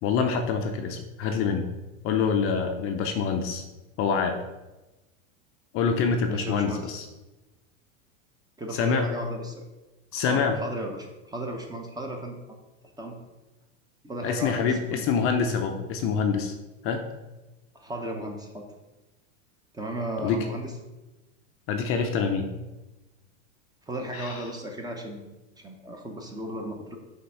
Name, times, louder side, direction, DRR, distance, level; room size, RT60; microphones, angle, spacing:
voice 1, 0.0-1.7 2.0-3.6 4.0-4.4 5.7-7.1 8.7-9.1 10.1-10.6 14.2-16.5 16.8-17.0 20.2-20.5 21.7-22.5 24.1-24.4, left 5 dB, 35° left, 5 dB, 0.5 m, -26 dB
voice 2, 6.3-6.9 8.6-9.6 10.2-12.4 13.0-13.1 14.0-15.0 17.7-18.6 19.7-20.7 23.9-27.0, right 1 dB, 10° right, 2 dB, 0.6 m, -35 dB
5.5 x 3.5 x 5.4 m, 1.1 s
supercardioid pair, 135°, 40 cm